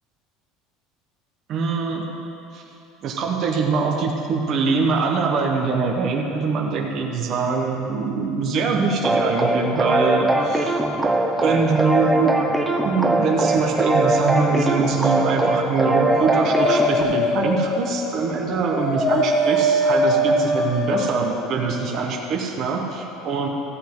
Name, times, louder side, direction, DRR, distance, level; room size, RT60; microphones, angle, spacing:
voice 1, 1.5-2.0 2.5-2.6 3.0-10.8 11.4-12.3 12.8-23.5, right 4 dB, 40° right, 0 dB, 1.1 m, -23 dB
sound 1, 9.0-17.0, right 2 dB, 10° right, 0.7 m, -21 dB
Dog, 15.6-21.2, equal, 35° left, 1.6 m, -22 dB
14.0 x 8.3 x 3.8 m, 2.9 s
cardioid pair, 155°, 0 cm